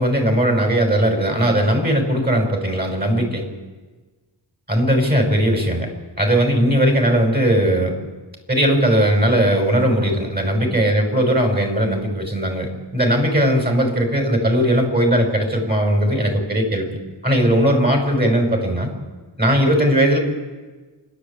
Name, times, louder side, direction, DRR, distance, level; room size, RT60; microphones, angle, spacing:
voice 1, 0.0-3.4 4.7-5.9 6.2-8.0 8.5-18.9 19.4-20.2, equal, 20° right, 3 dB, 6.3 m, -18 dB
27.5 x 11.0 x 8.8 m, 1.3 s
cardioid pair, 50°, 48 cm